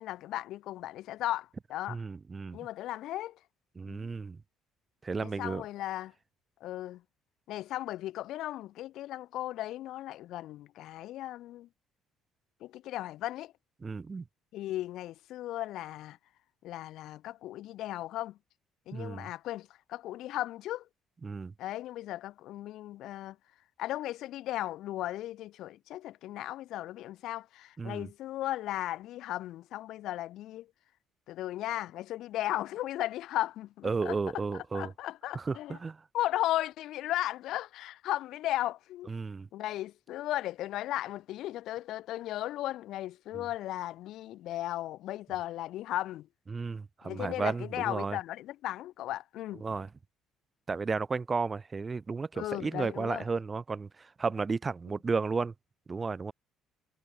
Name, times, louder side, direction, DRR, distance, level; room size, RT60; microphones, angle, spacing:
voice 1, 0.0-2.0 2.5-3.4 3.8-4.1 5.2-6.1 6.6-7.0 7.5-11.7 12.6-13.5 14.5-16.2 16.6-18.4 18.9-20.9 21.6-23.4 23.8-30.7 31.3-35.8 36.1-39.1 39.5-46.3 47.0-49.6 52.4-53.2, left 14 dB, 75° left, 1.8 m, -36 dB
voice 2, 1.9-2.6 3.8-4.4 5.0-5.6 13.8-14.2 18.9-19.3 21.2-21.5 27.8-28.1 33.8-34.9 35.3-36.0 39.1-39.5 43.3-43.4 46.5-48.2 49.6-49.9 50.7-55.5 55.9-56.3, right 4 dB, 25° right, 1.5 m, -33 dB
cardioid pair, 105°, 0 cm